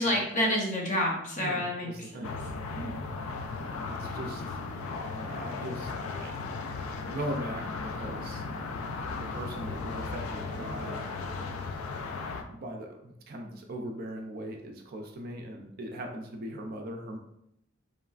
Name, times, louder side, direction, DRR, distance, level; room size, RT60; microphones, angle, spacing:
voice 1, 0.0-2.3 2.7-2.9, left 1 dB, 40° left, -1 dB, 0.6 m, -29 dB
voice 2, 1.4-2.4 3.5-4.6 5.1-6.3 7.1-8.4 9.2-11.0 12.0-17.2, right 1 dB, 50° right, 2 dB, 0.4 m, -40 dB
sound 1, 2.2-12.4, left 4 dB, 90° left, 0.3 m, -36 dB
3.0 x 2.3 x 2.3 m, 0.78 s
head